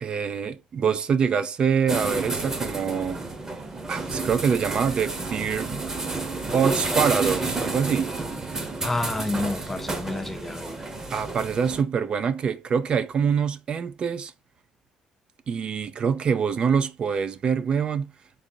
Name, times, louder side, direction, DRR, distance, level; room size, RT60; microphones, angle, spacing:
voice 1, 0.0-3.2 3.9-5.8 6.5-8.1 11.1-14.3 15.5-18.1, right 6 dB, 45° right, 0.4 m, -25 dB
sound 1, 1.9-11.8, right 3 dB, 25° right, 1.0 m, -30 dB
voice 2, 8.8-10.8, left 2 dB, 10° left, 0.6 m, -29 dB
3.9 x 3.7 x 2.7 m
cardioid pair, 100°, 2 cm